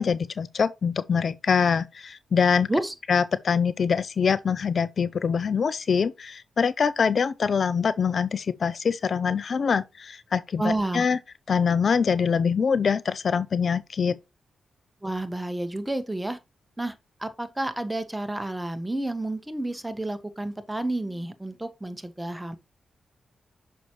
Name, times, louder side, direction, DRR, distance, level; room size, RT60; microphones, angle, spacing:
voice 1, 0.0-2.7 3.1-11.2 11.5-14.2, left 6 dB, 60° left, 0.4 m, -24 dB
voice 2, 10.6-11.1 15.0-16.4 16.8-16.9 17.2-22.6, right 1 dB, 15° right, 1.2 m, -30 dB
6.3 x 5.8 x 3.1 m
supercardioid pair, 40°, 0 cm